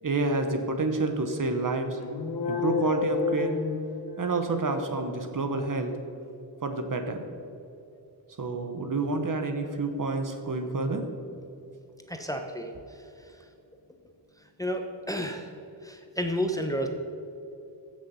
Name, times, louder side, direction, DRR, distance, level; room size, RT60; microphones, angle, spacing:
voice 1, 0.0-2.0 2.5-3.6 4.2-5.9 6.6-7.2 8.4-11.0, right 3 dB, 45° right, 6 dB, 1.2 m, -28 dB
sound 1, 2.0-4.6, left 5 dB, 60° left, 1.2 m, -30 dB
voice 2, 12.1-12.7 14.6-15.5 15.8-16.9, equal, 10° left, 4 dB, 1.0 m, -31 dB
15.0 x 6.5 x 5.6 m, 2.8 s
wide cardioid pair, 90°, 43 cm